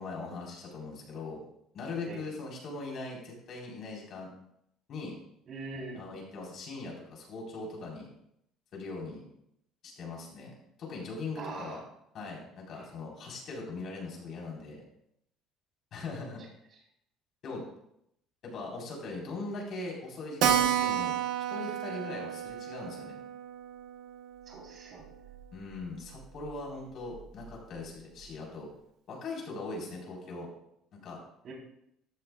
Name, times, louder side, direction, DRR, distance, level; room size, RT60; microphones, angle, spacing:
voice 1, 0.0-1.4 1.7-4.3 4.9-5.1 5.9-8.1 8.7-9.2 9.8-11.8 12.1-14.8 15.9-16.4 17.4-17.6 18.4-21.2 21.5-23.2 25.5-28.7 29.1-30.5 30.9-31.2, left 3 dB, 45° left, -2 dB, 4.2 m, -40 dB
voice 2, 5.5-6.0 11.4-11.8 12.7-12.8 24.5-25.1 31.4-31.5, right 3 dB, 35° right, -2 dB, 3.8 m, -42 dB
Keyboard (musical), 20.4-25.5 25.7-25.8 26.1-26.2 26.5-26.6 27.1-27.5, right 9 dB, 70° right, 1.2 m, -32 dB
14.0 x 12.0 x 2.4 m, 0.76 s
cardioid pair, 160°, 0 cm